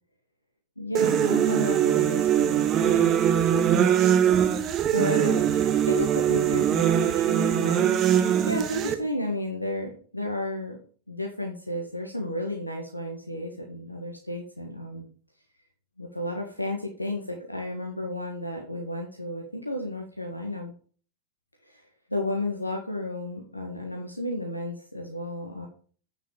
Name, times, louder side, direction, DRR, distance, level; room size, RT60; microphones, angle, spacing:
voice 1, 0.8-4.2 4.9-10.8 11.1-15.1 16.0-20.7 21.6-21.8 22.1-25.7, left 1 dB, 85° left, 1 dB, 1.5 m, -33 dB
sound 1, 0.9-8.9, right 10 dB, 30° right, 1.1 m, -22 dB
8.7 x 6.6 x 4.9 m, 0.44 s
figure-of-eight pair, 90°, 0 cm